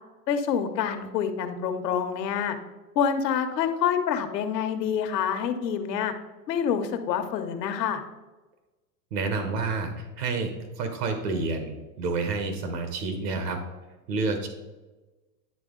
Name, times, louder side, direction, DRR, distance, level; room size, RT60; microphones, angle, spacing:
voice 1, 0.3-2.6 2.9-6.1 6.5-8.0, left 7 dB, 90° left, 8 dB, 1.0 m, -27 dB
voice 2, 9.1-13.6 14.1-14.5, right 3 dB, 75° right, 6 dB, 1.3 m, -29 dB
10.5 x 3.5 x 3.8 m, 1.2 s
supercardioid pair, 155°, 49 cm